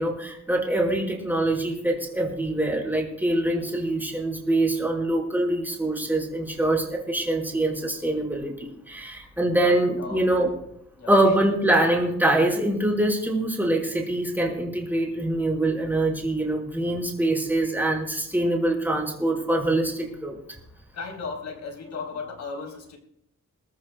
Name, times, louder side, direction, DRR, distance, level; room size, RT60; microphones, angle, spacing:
voice 1, 0.0-10.5 11.1-20.4, right 1 dB, 5° right, -1 dB, 5.1 m, -24 dB
voice 2, 9.6-10.2 11.0-11.2 16.8-17.1 20.9-23.0, left 4 dB, 60° left, 2 dB, 4.0 m, -36 dB
28.5 x 13.5 x 2.4 m, 0.73 s
wide cardioid pair, 135°, 31 cm